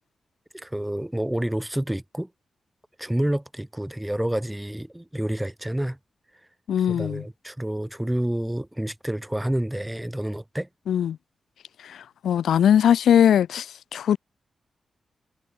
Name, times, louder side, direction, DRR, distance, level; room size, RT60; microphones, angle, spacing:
voice 1, 0.5-2.3 3.0-6.0 6.9-10.7, right 1 dB, 10° right, 6.2 m, -28 dB
voice 2, 6.7-7.2 10.9-11.2 11.8-14.2, left 9 dB, 85° left, 1.7 m, -20 dB
supercardioid pair, 45°, 0 cm